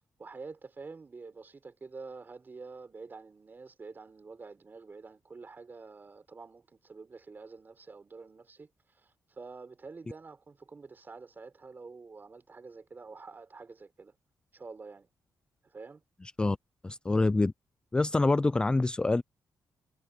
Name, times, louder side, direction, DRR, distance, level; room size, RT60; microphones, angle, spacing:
voice 1, 0.2-8.7 8.9-14.1 14.5-15.1 15.6-16.0, right 4 dB, 30° right, 4.1 m, -47 dB
voice 2, 16.8-17.5 17.9-19.2, left 2 dB, 15° left, 0.3 m, -26 dB
cardioid pair, 125°, 6 cm